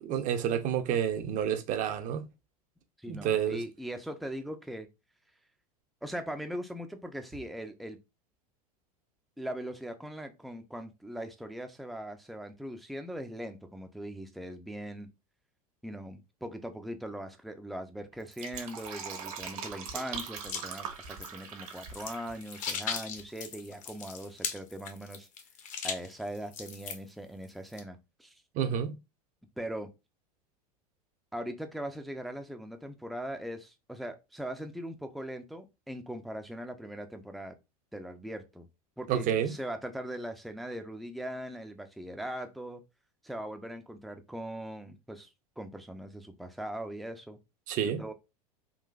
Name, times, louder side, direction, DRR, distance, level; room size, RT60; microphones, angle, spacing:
voice 1, 0.0-2.2 3.1-3.6 28.5-29.0 39.1-39.5 47.7-48.0, right 9 dB, 40° right, 0.6 m, -29 dB
voice 2, 3.0-4.9 6.0-8.0 9.4-15.1 15.8-25.3 25.8-28.3 29.6-29.9 31.3-37.6 37.9-38.7 39.0-42.8 43.2-47.4 47.8-48.1, equal, ahead, 0.4 m, -40 dB
Fill (with liquid), 18.1-22.9 23.2-23.3, right 6 dB, 65° right, 1.0 m, -41 dB
sound 1, 20.4-27.1 27.4-27.8, left 7 dB, 40° left, 0.8 m, -38 dB
3.9 x 2.5 x 2.4 m
hypercardioid pair, 85°, 20 cm